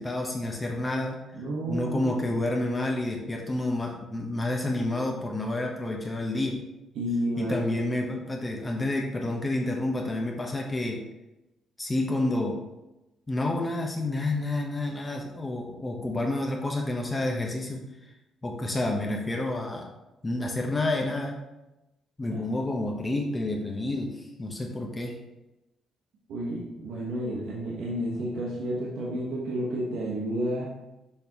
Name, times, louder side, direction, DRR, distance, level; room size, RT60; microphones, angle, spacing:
voice 1, 0.0-1.2 1.7-6.6 7.4-11.0 11.8-12.6 13.3-17.8 18.4-19.9 20.2-21.4 22.2-25.2, left 2 dB, 20° left, 0 dB, 1.0 m, -29 dB
voice 2, 1.3-2.3 6.9-7.6 22.3-22.4 26.3-30.7, right 1 dB, 85° right, -4 dB, 1.2 m, -31 dB
6.6 x 5.2 x 3.0 m, 0.96 s
cardioid pair, 90°, 0 cm